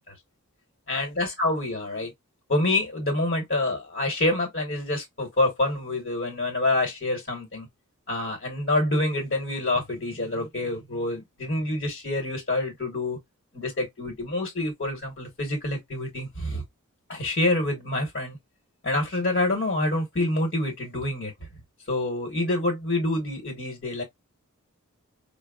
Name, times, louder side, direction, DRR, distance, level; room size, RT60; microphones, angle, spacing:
voice 1, 0.9-2.1 2.5-7.7 8.1-13.2 13.5-16.6 17.1-18.4 18.8-21.3 21.9-24.0, left 2 dB, 50° left, 1.1 m, -27 dB
4.5 x 2.0 x 2.3 m
head